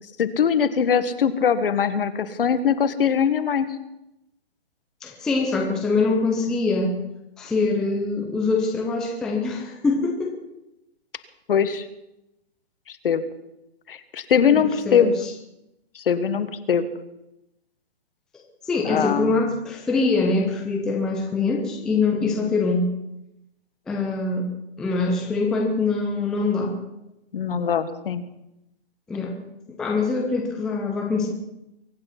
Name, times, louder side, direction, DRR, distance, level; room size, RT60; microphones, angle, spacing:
voice 1, 0.2-3.7 11.5-11.9 12.9-13.2 13.9-15.1 15.9-16.9 18.8-19.4 27.3-28.2, left 7 dB, 60° left, 12 dB, 1.5 m, -21 dB
voice 2, 5.0-6.9 7.4-10.4 14.5-15.3 18.6-22.9 23.9-24.5 24.8-26.8 29.1-29.4 29.8-31.3, left 3 dB, ahead, 1 dB, 0.5 m, -24 dB
23.5 x 8.9 x 5.8 m, 0.89 s
hypercardioid pair, 155°, 32 cm